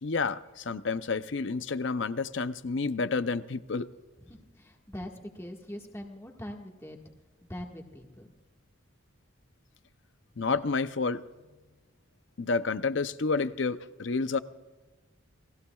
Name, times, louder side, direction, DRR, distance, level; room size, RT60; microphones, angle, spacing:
voice 1, 0.0-3.9 10.4-11.2 12.4-14.4, left 4 dB, 60° left, 0.6 m, -30 dB
voice 2, 4.2-7.0 7.5-8.3, equal, 15° left, 1.6 m, -42 dB
30.0 x 19.5 x 2.4 m
head